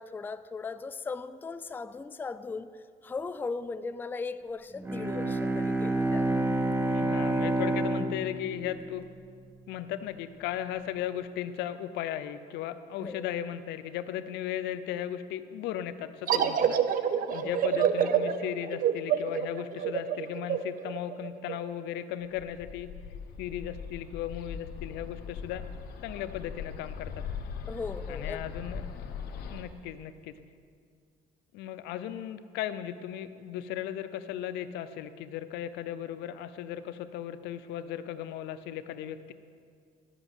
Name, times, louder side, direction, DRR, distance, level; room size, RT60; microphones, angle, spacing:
voice 1, 0.0-2.7 3.0-6.3 13.0-13.3 17.4-17.6 27.7-28.4, left 4 dB, 10° left, 12 dB, 0.3 m, -38 dB
Bowed string instrument, 4.8-9.6, right 1 dB, 15° right, 1.0 m, -29 dB
voice 2, 6.9-9.1 9.7-22.9 23.4-25.6 26.0-27.2 28.1-28.8 29.5-30.4 31.5-39.3, left 11 dB, 85° left, 12 dB, 0.6 m, -36 dB
sound 1, 16.3-21.6, right 8 dB, 55° right, 0.6 m, -27 dB
Bird, 22.3-29.6, left 6 dB, 65° left, 1.1 m, -40 dB
12.0 x 5.9 x 8.0 m, 2.2 s
cardioid pair, 110°, 17 cm